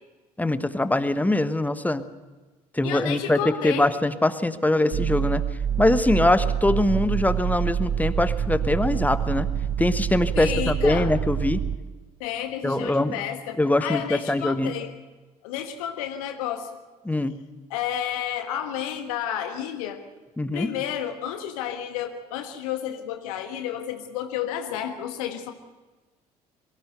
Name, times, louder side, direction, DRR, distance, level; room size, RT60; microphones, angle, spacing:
voice 1, 0.4-2.1 2.7-5.4 5.8-9.5 9.8-11.6 12.6-13.1 13.6-14.7 17.0-17.4 20.4-20.7, left 1 dB, 10° left, 13 dB, 1.2 m, -23 dB
voice 2, 2.8-3.9 10.3-11.1 12.2-14.9 15.4-16.7 17.7-20.0 20.5-25.5, left 10 dB, 65° left, 7 dB, 1.6 m, -31 dB
sound 1, 4.9-11.8, right 9 dB, 40° right, 0.9 m, -26 dB
22.5 x 16.0 x 8.1 m, 1.2 s
figure-of-eight pair, 55°, 20 cm